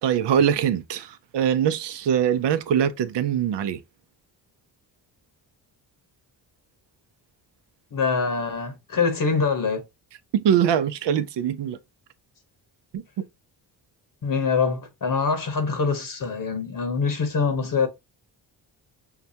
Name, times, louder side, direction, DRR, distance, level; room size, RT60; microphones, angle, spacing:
voice 1, 0.0-3.8 10.3-11.8 12.9-13.3, right 9 dB, 65° right, 0.6 m, -23 dB
voice 2, 7.9-9.8 14.2-17.9, left 5 dB, 45° left, 1.0 m, -24 dB
5.7 x 2.2 x 2.7 m
supercardioid pair, 55°, 46 cm